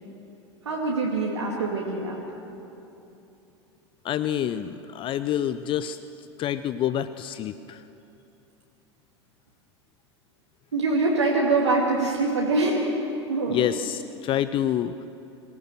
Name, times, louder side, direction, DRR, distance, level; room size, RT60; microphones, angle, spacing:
voice 1, 0.6-2.2 10.7-12.8 13.3-13.7, right 3 dB, 75° right, -3 dB, 2.4 m, -24 dB
voice 2, 4.0-6.0 6.4-7.8 13.5-15.1, left 10 dB, 35° left, 13 dB, 0.6 m, -27 dB
24.5 x 17.0 x 6.8 m, 2.8 s
figure-of-eight pair, 80°, 15 cm